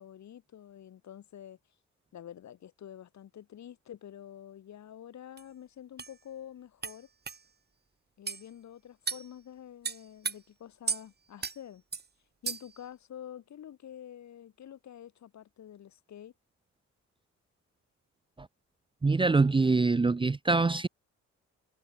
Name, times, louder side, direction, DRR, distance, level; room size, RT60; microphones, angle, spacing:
voice 1, 0.0-1.6 2.1-7.1 8.2-11.8 12.4-16.3, left 10 dB, 65° left, 7.8 m, -48 dB
sound 1, 5.4-5.5 6.0-6.1 6.8-7.0 7.3-7.4 8.3-8.4 9.1-9.3 9.8-10.4 10.9-11.0 11.4-11.6 11.9-12.1 12.5-12.8, right 5 dB, 35° right, 2.6 m, -34 dB
voice 2, 19.0-20.9, right 3 dB, 15° right, 0.7 m, -24 dB
cardioid pair, 90°, 30 cm